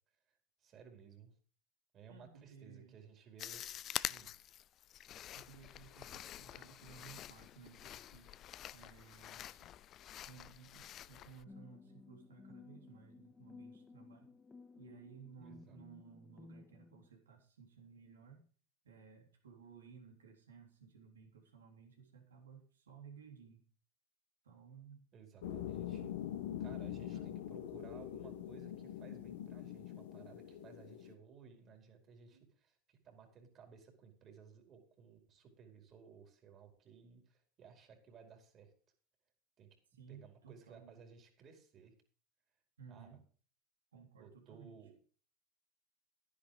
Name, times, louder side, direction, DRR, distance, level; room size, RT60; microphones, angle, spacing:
voice 1, 0.3-1.4 1.9-3.7 4.1-4.3 15.4-15.8 25.1-26.1 26.6-38.7 39.6-39.7 40.1-41.9 42.9-43.2 44.2-44.9, right 6 dB, 45° right, 4 dB, 4.9 m, -58 dB
voice 2, 2.1-2.9 5.3-8.3 8.7-9.7 10.3-14.3 14.8-18.4 18.8-23.6 24.4-25.0 26.6-27.3 29.7-30.1 32.3-32.5 39.9-41.0 42.8-43.2 43.9-44.8, right 6 dB, 85° right, 2 dB, 3.6 m, -58 dB
sound 1, 3.4-11.5, left 12 dB, 45° left, 0.5 m, -47 dB
sound 2, 11.5-17.1, left 4 dB, 20° left, 2.0 m, -57 dB
sound 3, 25.4-31.1, left 11 dB, 75° left, 1.4 m, -44 dB
12.0 x 10.5 x 5.1 m, 0.41 s
hypercardioid pair, 80°, 0 cm